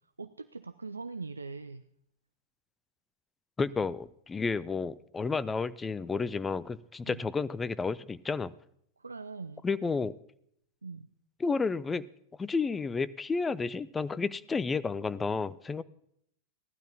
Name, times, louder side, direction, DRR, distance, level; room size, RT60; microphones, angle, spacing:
voice 1, 0.2-1.9 7.1-7.3 9.0-9.6 10.8-11.1, right 4 dB, 80° right, 13 dB, 0.3 m, -42 dB
voice 2, 3.6-8.5 9.6-10.2 11.4-12.1 12.4-15.8, left 4 dB, 15° left, 17 dB, 0.4 m, -31 dB
18.0 x 11.5 x 2.8 m, 0.71 s
figure-of-eight pair, 90°, 0 cm